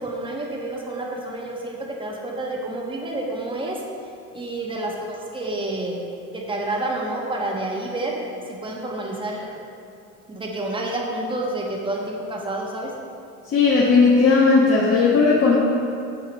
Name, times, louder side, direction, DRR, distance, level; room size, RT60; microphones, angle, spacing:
voice 1, 0.0-3.8 4.3-6.0 6.3-8.2 8.5-9.5 10.3-12.9, right 2 dB, 15° right, -1 dB, 1.5 m, -29 dB
voice 2, 13.5-15.6, left 4 dB, 40° left, -6 dB, 1.6 m, -16 dB
10.5 x 7.3 x 3.2 m, 2.5 s
supercardioid pair, 105°, 37 cm